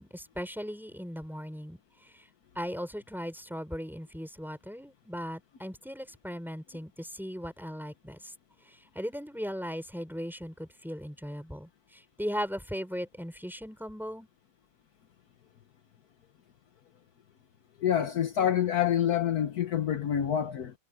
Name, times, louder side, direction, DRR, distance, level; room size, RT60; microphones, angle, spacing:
voice 1, 0.0-2.3 2.5-8.3 8.6-14.3, equal, ahead, 6.5 m, -38 dB
voice 2, 17.8-20.7, left 9 dB, 65° left, 1.5 m, -27 dB
omnidirectional pair, 1.8 m